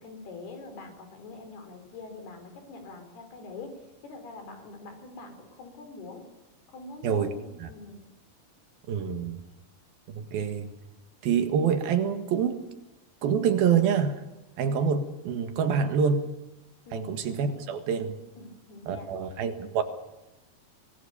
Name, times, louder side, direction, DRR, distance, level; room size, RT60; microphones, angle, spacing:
voice 1, 0.0-3.7 4.0-6.2 6.7-8.1 16.9-17.2 18.4-19.2, left 3 dB, 85° left, 7 dB, 5.9 m, -44 dB
voice 2, 8.9-9.4 10.1-10.7 11.2-12.6 13.2-14.2 14.6-16.3 16.9-18.2 18.9-19.8, right 7 dB, 75° right, 8 dB, 3.5 m, -26 dB
24.5 x 19.0 x 6.9 m, 0.99 s
omnidirectional pair, 4.4 m